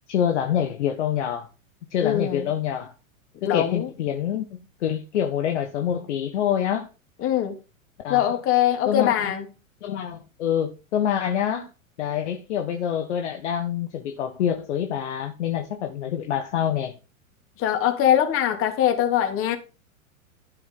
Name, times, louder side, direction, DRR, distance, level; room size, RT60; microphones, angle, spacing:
voice 1, 0.1-1.5 1.9-2.9 3.4-6.9 8.0-8.4 8.9-9.3 9.8-11.7 12.0-16.9, left 9 dB, 55° left, 1.6 m, -26 dB
voice 2, 2.0-2.5 3.4-3.9 7.2-7.6 8.1-9.4 17.6-19.6, left 11 dB, 30° left, 3.1 m, -22 dB
12.5 x 8.7 x 4.0 m
figure-of-eight pair, 95°, 41 cm